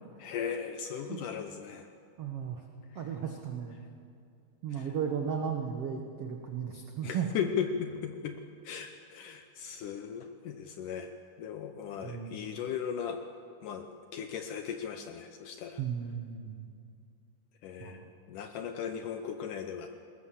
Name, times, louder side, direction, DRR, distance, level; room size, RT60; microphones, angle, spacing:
voice 1, 0.2-1.9 2.9-3.0 4.7-4.9 7.0-11.1 11.4-13.2 13.6-13.9 14.1-15.8 17.6-19.9, left 7 dB, 75° left, 7 dB, 1.9 m, -37 dB
voice 2, 2.2-2.6 2.9-3.8 4.6-7.3 12.0-12.4 15.8-16.7 17.8-18.1, right 7 dB, 85° right, 3 dB, 1.3 m, -35 dB
20.0 x 19.5 x 7.4 m, 2.4 s
omnidirectional pair, 4.6 m